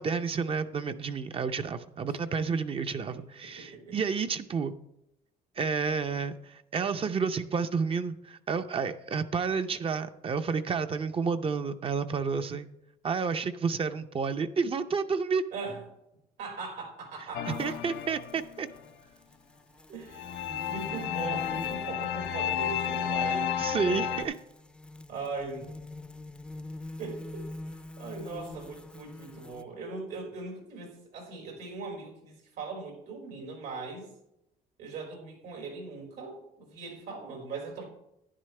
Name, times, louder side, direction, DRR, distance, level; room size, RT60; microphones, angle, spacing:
voice 1, 0.0-4.7 5.6-12.7 13.0-15.4 17.5-18.7 23.6-24.3, right 5 dB, 35° right, 9 dB, 0.6 m, -30 dB
voice 2, 2.9-4.0 15.5-15.9 16.4-17.8 19.9-20.3 20.7-23.5 23.8-24.3 25.1-25.7 27.0-34.1 34.8-37.8, right 4 dB, 85° right, -1 dB, 4.3 m, -40 dB
sound 1, 17.3-18.7 20.1-24.2, left 8 dB, 85° left, 0.8 m, -32 dB
sound 2, 17.4-29.6, left 2 dB, 5° left, 0.5 m, -46 dB
11.0 x 9.7 x 3.3 m, 0.82 s
cardioid pair, 110°, 17 cm